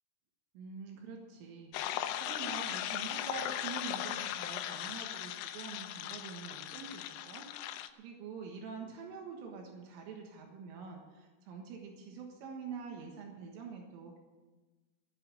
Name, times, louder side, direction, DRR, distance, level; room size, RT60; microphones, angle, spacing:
voice 1, 0.6-7.5 8.0-14.2, right 5 dB, 80° right, 1 dB, 3.9 m, -46 dB
sound 1, 1.7-7.9, left 12 dB, 90° left, 3.4 m, -38 dB
14.5 x 8.3 x 7.7 m, 1.2 s
omnidirectional pair, 5.8 m